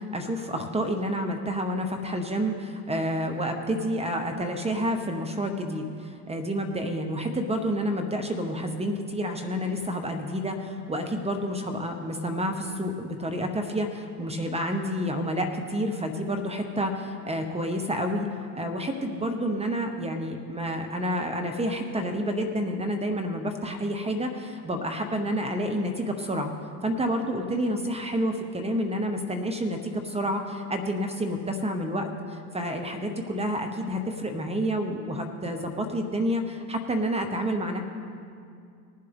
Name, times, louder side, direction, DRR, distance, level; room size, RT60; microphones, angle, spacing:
voice 1, 0.0-18.3 18.5-26.5 26.8-37.8, equal, 10° right, 5 dB, 0.9 m, -29 dB
19.5 x 7.6 x 3.7 m, 2.4 s
hypercardioid pair, 85°, 50 cm